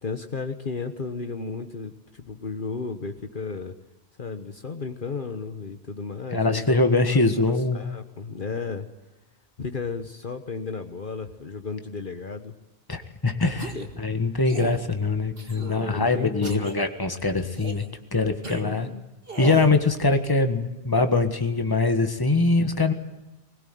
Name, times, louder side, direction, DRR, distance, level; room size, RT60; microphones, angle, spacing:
voice 1, 0.0-3.7 4.2-8.9 9.6-12.5 13.7-13.9 15.5-16.7 18.5-19.0, left 4 dB, 55° left, 7 dB, 1.4 m, -34 dB
voice 2, 6.3-7.8 12.9-17.8 18.1-18.9 19.4-22.9, left 3 dB, 20° left, 7 dB, 1.6 m, -23 dB
sound 1, 13.6-13.9 14.4-14.8 15.4-15.9 16.4-16.7 17.5-17.9 18.4-18.6 19.3-19.7, right 3 dB, 60° right, 2.1 m, -35 dB
21.0 x 20.5 x 9.3 m, 0.97 s
omnidirectional pair, 1.1 m